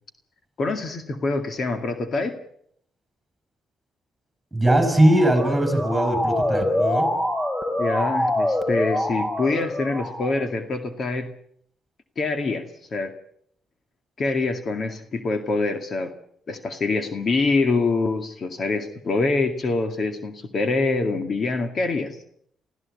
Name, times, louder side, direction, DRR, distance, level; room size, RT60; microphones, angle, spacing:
voice 1, 0.6-2.4 7.8-11.3 12.2-13.1 14.2-16.1 16.5-22.2, left 3 dB, 45° left, 7 dB, 2.2 m, -25 dB
voice 2, 4.5-7.2, right 1 dB, 10° right, 9 dB, 7.1 m, -20 dB
Motor vehicle (road) / Siren, 4.7-10.5, left 1 dB, 20° left, 3.2 m, -25 dB
25.0 x 15.5 x 8.4 m, 0.68 s
cardioid pair, 90°, 0 cm